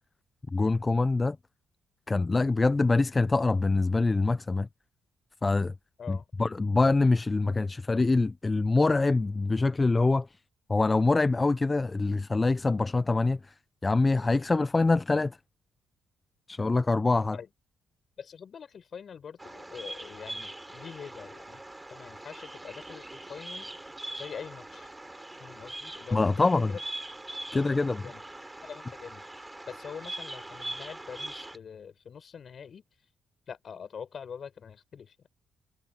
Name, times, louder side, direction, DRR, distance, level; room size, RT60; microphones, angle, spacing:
voice 1, 0.5-1.4 2.1-4.7 5.4-5.7 6.1-10.3 10.7-13.5 13.8-15.4 16.5-17.4 26.1-26.7 27.5-28.0, left 3 dB, 25° left, 0.4 m, -25 dB
voice 2, 18.2-21.6 21.9-23.7 24.1-24.9 25.4-26.8 27.5-28.2 28.6-32.8 33.5-35.1, left 7 dB, 50° left, 4.9 m, -44 dB
Bird vocalization bird call bird song, 19.4-31.6, right 1 dB, 10° right, 4.7 m, -42 dB
cardioid pair, 90°, 0 cm